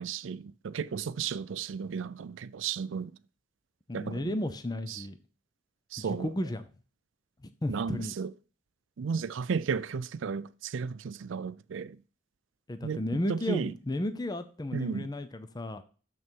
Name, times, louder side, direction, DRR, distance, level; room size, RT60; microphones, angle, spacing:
voice 1, 0.0-3.1 3.9-4.3 4.9-5.0 5.9-6.3 7.7-8.3 9.0-12.0 12.8-13.0 13.3-13.7 14.7-15.1, right 6 dB, 80° right, 0.4 m, -34 dB
voice 2, 3.9-5.2 6.0-6.7 7.6-8.1 12.7-15.8, left 1 dB, 20° left, 0.5 m, -33 dB
6.9 x 6.2 x 4.5 m
head